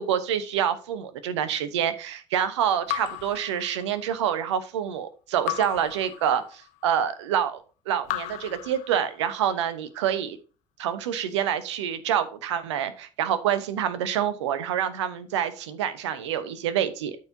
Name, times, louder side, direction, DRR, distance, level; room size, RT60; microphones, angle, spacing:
voice 1, 0.0-10.4 10.8-17.2, right 9 dB, 70° right, 1.0 m, -27 dB
Raindrop / Drip, 2.9-4.3 5.5-6.8 8.0-9.5, left 16 dB, 50° left, 0.5 m, -35 dB
13.0 x 4.7 x 2.7 m
figure-of-eight pair, 65°, 16 cm